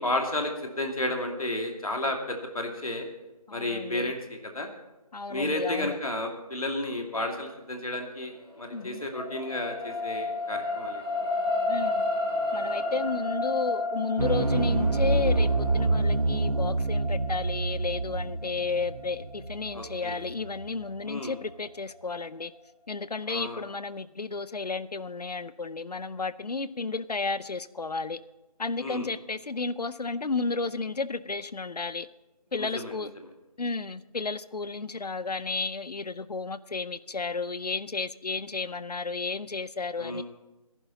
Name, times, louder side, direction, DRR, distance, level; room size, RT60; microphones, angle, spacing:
voice 1, 0.0-3.1 3.5-4.7 5.3-11.3 19.7-20.3 21.1-21.3 23.3-23.6 28.8-29.1 32.6-33.3 40.0-40.2, left 1 dB, 65° left, 2 dB, 2.6 m, -32 dB
voice 2, 3.5-4.1 5.1-6.0 8.7-9.0 11.7-12.1 12.5-22.5 22.9-28.2 28.6-32.1 32.5-33.1 33.6-40.2, left 4 dB, 80° left, 16 dB, 0.6 m, -32 dB
sound 1, 8.3-20.9 21.4-21.5, left 2 dB, 40° left, 5.7 m, -32 dB
sound 2, 14.2-20.6, right 2 dB, 70° right, 1.5 m, -27 dB
18.0 x 11.0 x 4.1 m, 1.0 s
figure-of-eight pair, 170°, 20 cm